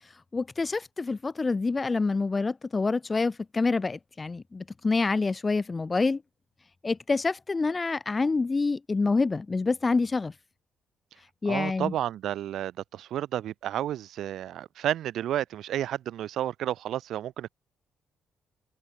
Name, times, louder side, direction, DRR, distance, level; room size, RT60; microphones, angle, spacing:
voice 1, 0.3-6.2 6.8-10.3 11.4-11.9, left 3 dB, 25° left, 1.6 m, -27 dB
voice 2, 11.4-17.5, right 11 dB, 75° right, 2.9 m, -31 dB
cardioid pair, 90°, 0 cm